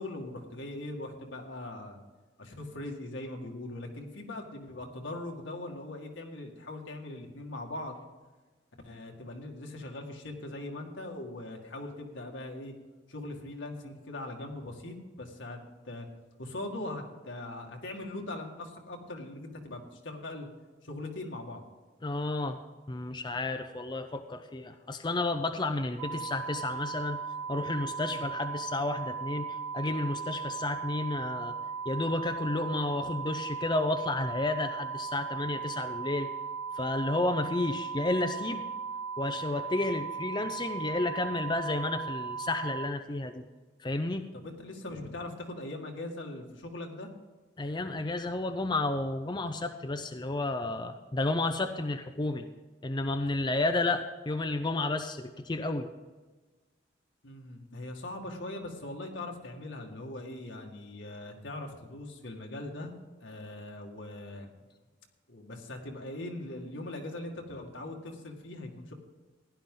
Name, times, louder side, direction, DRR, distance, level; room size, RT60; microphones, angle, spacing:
voice 1, 0.0-2.0 2.4-8.0 8.8-12.7 13.1-15.6 15.8-16.1 16.4-20.5 20.8-21.6 28.1-28.2 44.3-47.1 57.2-62.9 63.2-64.5 65.3-68.9, left 2 dB, 80° left, 2 dB, 1.9 m, -41 dB
voice 2, 22.0-22.6 22.9-27.2 27.5-31.5 31.9-36.3 36.8-38.6 39.2-43.4 43.8-44.2 47.6-52.5 52.8-55.9, left 2 dB, 25° left, 6 dB, 0.5 m, -31 dB
sound 1, 26.0-42.8, right 5 dB, 70° right, 3.2 m, -37 dB
16.0 x 11.0 x 3.8 m, 1.3 s
head